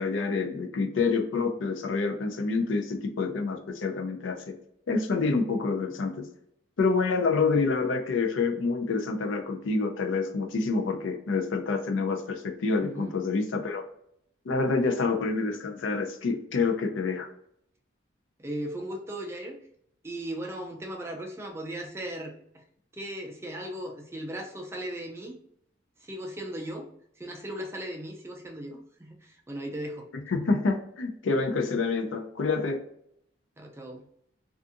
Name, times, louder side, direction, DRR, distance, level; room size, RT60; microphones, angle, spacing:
voice 1, 0.0-4.5 4.9-6.2 6.8-13.8 14.5-17.3 30.3-32.8, left 4 dB, 75° left, 4 dB, 0.5 m, -27 dB
voice 2, 12.8-13.2 18.4-19.6 20.0-22.6 22.9-25.3 26.0-26.9 27.2-30.1 33.6-34.1, right 1 dB, 15° right, 1 dB, 0.3 m, -37 dB
2.6 x 2.4 x 2.4 m, 0.72 s
head